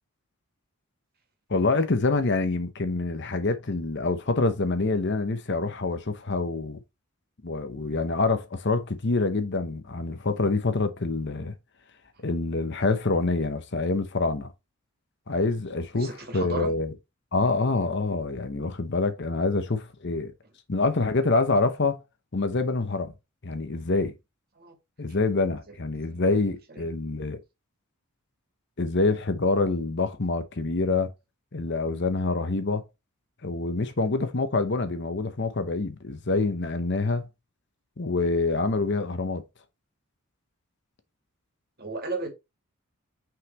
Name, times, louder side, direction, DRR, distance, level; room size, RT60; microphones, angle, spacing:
voice 1, 1.5-6.8 7.4-11.5 12.2-14.5 15.3-16.9 17.3-20.3 20.7-22.0 22.3-23.1 23.4-24.1 25.0-27.4 28.8-31.1 31.5-32.8 33.4-37.3 38.0-39.4, left 3 dB, 55° left, 0.9 m, -26 dB
voice 2, 15.9-16.7 24.6-24.8 25.7-25.8 26.1-26.4 26.7-26.9 41.8-42.3, right 3 dB, 45° right, 2.4 m, -35 dB
5.8 x 5.8 x 3.1 m
head